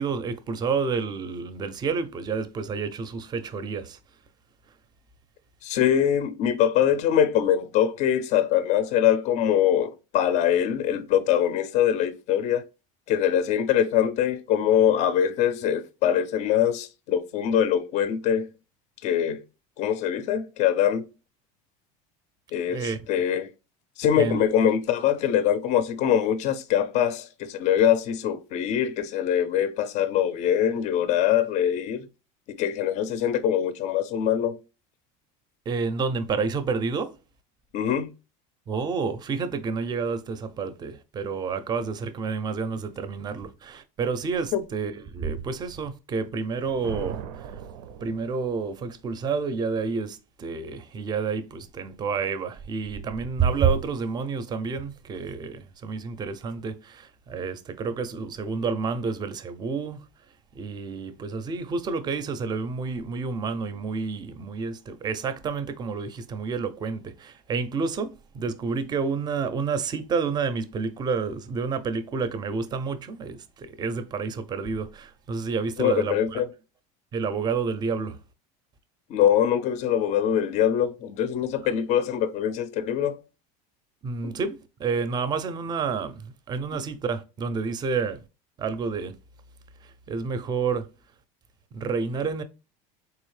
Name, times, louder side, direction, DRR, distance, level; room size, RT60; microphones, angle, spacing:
voice 1, 0.0-4.0 22.7-23.0 24.2-24.4 35.7-37.1 38.7-47.5 48.0-60.1 60.6-76.4 77.1-78.2 84.0-88.2 88.6-89.1 89.8-90.9 91.7-92.4, right 5 dB, 25° right, 0.4 m, -29 dB
voice 2, 5.6-12.6 13.1-18.5 19.0-19.4 19.8-21.0 22.5-23.5 24.0-32.1 32.5-34.6 37.7-38.1 44.5-44.6 75.8-76.5 79.1-83.2 84.2-84.4, left 9 dB, 45° left, 0.4 m, -23 dB
Thunder, 46.5-48.7, right 8 dB, 90° right, 0.5 m, -39 dB
3.8 x 2.7 x 3.1 m
cardioid pair, 140°, 17 cm